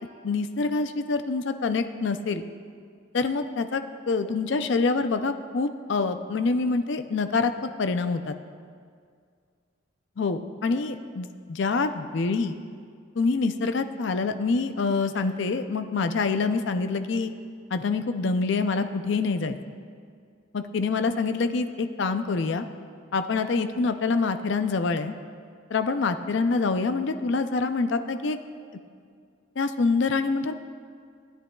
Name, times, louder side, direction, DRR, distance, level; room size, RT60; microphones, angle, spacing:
voice 1, 0.2-2.4 3.1-3.8 4.1-8.4 10.2-12.6 13.2-17.3 17.7-19.6 20.5-22.6 23.1-25.1 25.7-28.4 29.6-30.5, left 4 dB, 60° left, 8 dB, 0.5 m, -26 dB
16.0 x 10.0 x 2.3 m, 2.1 s
head